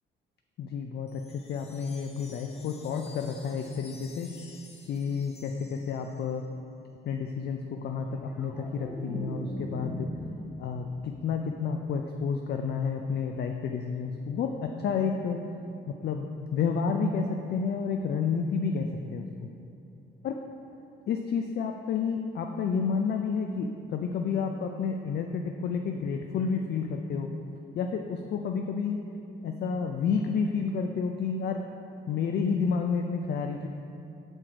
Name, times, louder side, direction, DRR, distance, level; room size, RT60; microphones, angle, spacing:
voice 1, 0.6-4.4 4.9-6.4 7.0-10.1 10.6-15.5 15.9-19.3 20.2-20.3 21.1-27.3 27.7-29.0 29.4-31.6 32.1-33.7, left 5 dB, 55° left, 4 dB, 0.4 m, -30 dB
sound 1, 1.1-6.4, left 3 dB, 30° left, 0.8 m, -53 dB
sound 2, 8.0-11.2 11.5-11.9, equal, 5° right, 0.7 m, -39 dB
6.3 x 4.4 x 4.9 m, 2.7 s
cardioid pair, 90°, 20 cm